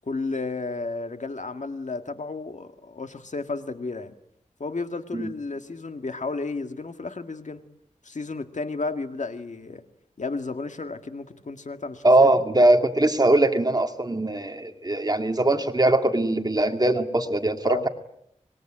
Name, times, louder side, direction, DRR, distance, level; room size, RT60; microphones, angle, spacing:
voice 1, 0.0-4.1 4.6-7.6 8.0-9.8 10.2-12.4 17.6-17.9, left 3 dB, 65° left, 7 dB, 2.0 m, -32 dB
voice 2, 12.0-17.9, right 2 dB, 30° right, 6 dB, 2.3 m, -21 dB
25.0 x 21.5 x 8.9 m, 0.77 s
wide cardioid pair, 70°, 13 cm